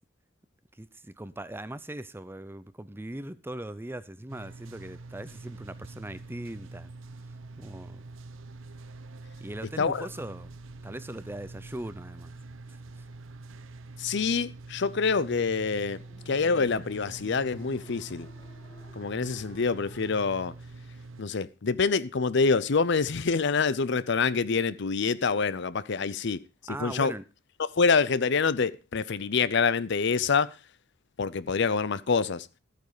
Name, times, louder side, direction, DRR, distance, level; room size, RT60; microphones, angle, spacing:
voice 1, 0.7-6.9 7.6-8.0 9.4-10.5 10.8-12.3 12.7-13.1 26.7-27.2, right 1 dB, 10° right, 0.6 m, -40 dB
sound 1, 4.3-21.2, right 3 dB, 85° right, 0.9 m, -45 dB
voice 2, 14.0-18.3 19.0-20.5 21.2-26.4 26.8-27.1 27.6-30.5 31.2-32.5, left 5 dB, 60° left, 0.7 m, -26 dB
sound 2, 15.4-20.5, left 1 dB, 25° left, 2.5 m, -56 dB
13.0 x 9.0 x 4.9 m
head